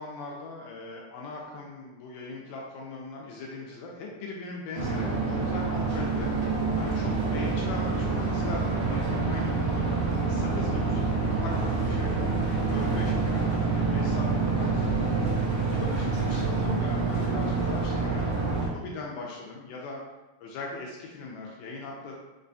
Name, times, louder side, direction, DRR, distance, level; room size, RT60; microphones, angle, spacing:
voice 1, 0.0-6.3 6.7-10.0 10.3-12.3 12.7-15.1 15.7-18.3 18.7-20.0 20.4-22.2, left 3 dB, 80° left, -1 dB, 2.0 m, -39 dB
sound 1, 4.7-18.7, right 4 dB, 85° right, 1.0 m, -27 dB
5.2 x 2.2 x 2.6 m, 1.1 s
omnidirectional pair, 3.8 m